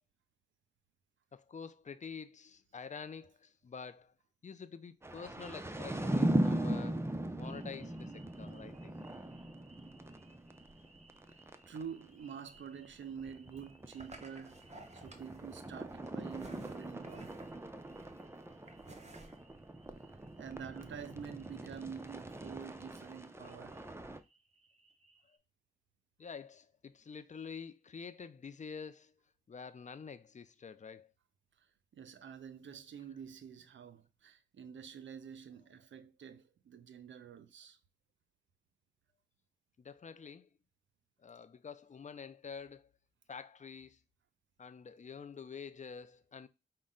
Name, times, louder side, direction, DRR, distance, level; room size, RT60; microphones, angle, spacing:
voice 1, 1.3-4.1 4.4-7.1 7.4-9.0 23.8-23.9 26.2-29.1 29.5-31.1 39.8-40.5 41.2-42.9 43.3-44.0 44.6-46.5, left 6 dB, 40° left, 0.5 m, -48 dB
sound 1, 5.0-11.8 12.1-12.2 12.4-12.6 12.8-24.2, right 1 dB, 15° right, 0.6 m, -39 dB
sound 2, 7.4-25.4, right 2 dB, 35° right, 1.0 m, -60 dB
voice 2, 11.7-14.6 14.9-17.4 20.3-23.8 31.9-37.8, right 7 dB, 75° right, 0.6 m, -47 dB
5.2 x 2.2 x 3.7 m
cardioid pair, 45°, 20 cm